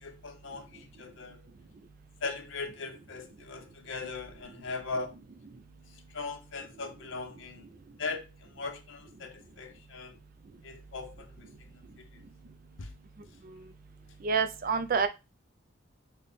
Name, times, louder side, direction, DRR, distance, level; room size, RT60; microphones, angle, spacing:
voice 1, 0.0-1.5 2.2-5.1 5.9-7.7 8.0-10.2 10.6-12.1 12.8-12.9, left 4 dB, 70° left, 0.6 m, -40 dB
voice 2, 14.2-15.1, right 5 dB, 45° right, 0.4 m, -27 dB
4.1 x 2.1 x 3.4 m
head